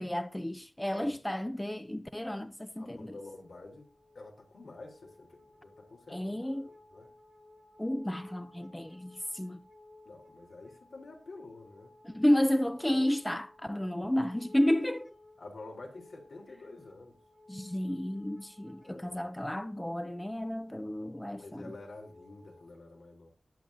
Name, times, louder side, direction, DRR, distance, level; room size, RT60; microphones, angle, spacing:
voice 1, 0.0-3.2 6.1-6.7 7.8-9.6 12.0-15.1 17.5-21.8, left 1 dB, 10° left, 0.6 m, -31 dB
voice 2, 2.8-3.9 4.1-7.1 8.3-8.4 10.1-12.4 12.8-13.0 15.4-17.2 18.8-19.3 21.4-23.3, left 2 dB, 80° left, 3.7 m, -49 dB
sound 1, 3.1-22.7, left 2 dB, 60° left, 1.6 m, -58 dB
20.0 x 7.0 x 2.8 m
wide cardioid pair, 95°, 0 cm